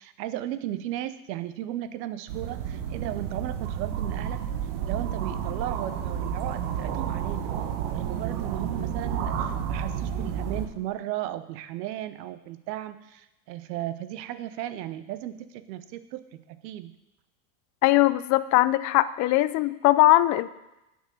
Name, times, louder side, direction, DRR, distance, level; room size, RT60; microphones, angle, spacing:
voice 1, 0.0-4.4 4.8-7.5 7.9-16.9, right 13 dB, 80° right, 13 dB, 0.8 m, -35 dB
sound 1, 2.3-10.7, right 8 dB, 60° right, 1.2 m, -31 dB
voice 2, 17.8-20.5, left 17 dB, 40° left, 16 dB, 0.4 m, -20 dB
8.1 x 6.3 x 6.5 m, 0.95 s
supercardioid pair, 110°, 49 cm